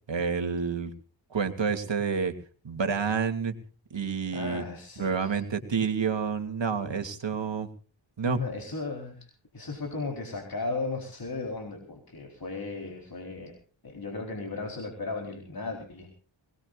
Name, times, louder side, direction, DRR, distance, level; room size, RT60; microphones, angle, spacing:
voice 1, 0.1-0.9 1.3-2.3 2.6-3.5 3.9-4.6 5.0-7.7 8.2-8.4, right 6 dB, 70° right, 6 dB, 2.8 m, -29 dB
voice 2, 4.3-5.4 8.2-9.3 9.5-13.6 13.8-16.1, left 3 dB, 50° left, 2 dB, 4.3 m, -36 dB
22.5 x 20.5 x 2.5 m, 0.39 s
wide cardioid pair, 85°, 45 cm